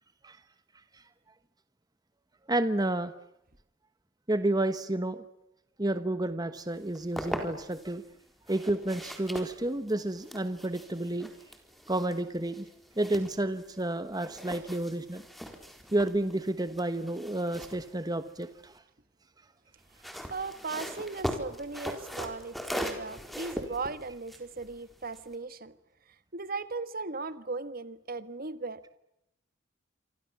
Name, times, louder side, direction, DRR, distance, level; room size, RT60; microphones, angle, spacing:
voice 1, 2.5-3.1 4.3-5.2 5.8-8.0 8.5-11.3 11.9-12.7 12.9-15.2 15.9-18.8, right 1 dB, 20° right, 11 dB, 1.2 m, -30 dB
sound 1, 6.7-7.9 8.5-13.9 14.1-18.8 19.8-25.4, equal, ahead, 4.1 m, -40 dB
voice 2, 20.3-25.7 26.3-29.0, right 3 dB, 50° right, 13 dB, 1.6 m, -37 dB
28.0 x 25.5 x 7.2 m, 0.85 s
head